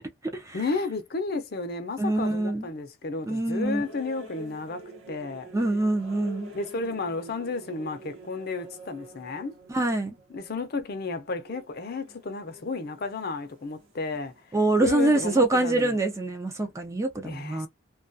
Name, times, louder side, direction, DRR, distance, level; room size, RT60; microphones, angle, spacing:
voice 1, 0.5-5.5 6.5-9.5 10.3-16.0 17.2-17.7, left 3 dB, 50° left, 0.5 m, -33 dB
voice 2, 2.0-2.7 3.3-3.8 5.5-6.5 9.7-10.2 14.5-17.7, right 2 dB, 15° right, 0.3 m, -25 dB
sound 1, 3.6-15.5, right 1 dB, 75° right, 0.8 m, -47 dB
2.3 x 2.2 x 2.5 m
head